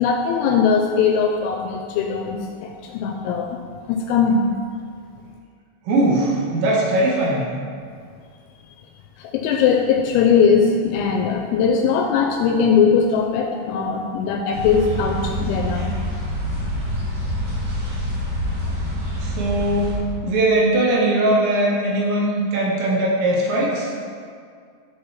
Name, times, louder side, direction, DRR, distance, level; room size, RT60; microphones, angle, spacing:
voice 1, 0.0-3.6 3.9-4.4 9.2-15.9, left 6 dB, 85° left, 2 dB, 2.7 m, -20 dB
voice 2, 5.9-7.5 19.2-23.9, right 1 dB, 75° right, -3 dB, 2.9 m, -20 dB
sound 1, 14.5-20.0, equal, 60° right, 2.3 m, -26 dB
12.0 x 4.5 x 3.1 m, 2.1 s
omnidirectional pair, 5.6 m